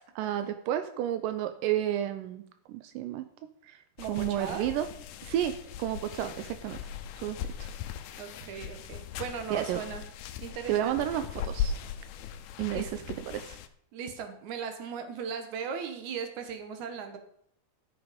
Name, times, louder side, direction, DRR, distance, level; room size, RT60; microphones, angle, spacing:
voice 1, 0.2-2.4 2.7-3.3 3.6-3.8 4.1-4.9 5.2-5.5 5.8-6.8 7.2-7.7 9.5-9.8 10.7-11.8 12.6-13.6, right 12 dB, 85° right, 9 dB, 1.9 m, -31 dB
sound 1, 4.0-13.7, left 8 dB, 85° left, 2.5 m, -39 dB
voice 2, 4.0-4.7 8.2-10.0 10.4-11.0 12.7-13.1 13.9-17.2, right 6 dB, 60° right, 6 dB, 2.3 m, -38 dB
14.0 x 6.3 x 5.2 m, 0.69 s
omnidirectional pair, 4.5 m